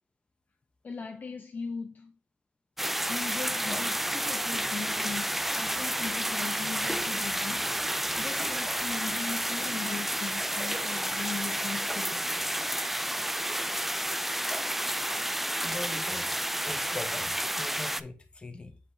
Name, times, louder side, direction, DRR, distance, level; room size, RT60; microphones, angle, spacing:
voice 1, 0.8-2.2 3.1-7.7 8.2-12.3, left 5 dB, 45° left, 0.6 m, -39 dB
sound 1, 2.8-18.0, right 1 dB, 5° right, 0.3 m, -30 dB
voice 2, 15.6-18.8, left 2 dB, 25° left, 0.9 m, -41 dB
7.7 x 5.0 x 2.7 m
wide cardioid pair, 145°, 4 cm